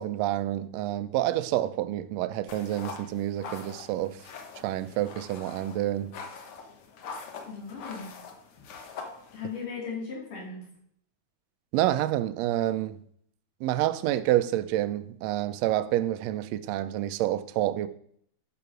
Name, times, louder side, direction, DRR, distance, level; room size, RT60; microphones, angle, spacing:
voice 1, 0.0-4.2 4.6-6.2 11.7-13.0 13.6-17.9, right 14 dB, 80° right, 1.6 m, -28 dB
sound 1, 2.5-9.7, left 5 dB, 60° left, 1.6 m, -43 dB
voice 2, 7.5-8.1 9.3-10.7, left 5 dB, 90° left, 4.6 m, -37 dB
11.0 x 6.0 x 5.0 m
omnidirectional pair, 3.5 m